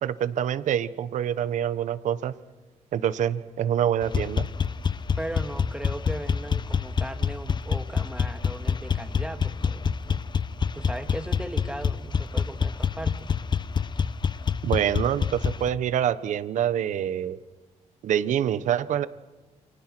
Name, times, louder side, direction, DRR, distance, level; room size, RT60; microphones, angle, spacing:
voice 1, 0.0-2.3 2.9-4.5 14.6-17.4 18.0-19.1, right 10 dB, 85° right, 14 dB, 1.2 m, -26 dB
sound 1, 4.0-15.7, left 6 dB, 35° left, 1.0 m, -27 dB
voice 2, 5.2-10.3 10.7-13.3, right 1 dB, 5° right, 7 dB, 2.3 m, -37 dB
29.0 x 29.0 x 6.2 m, 1.2 s
cardioid pair, 95°, 12 cm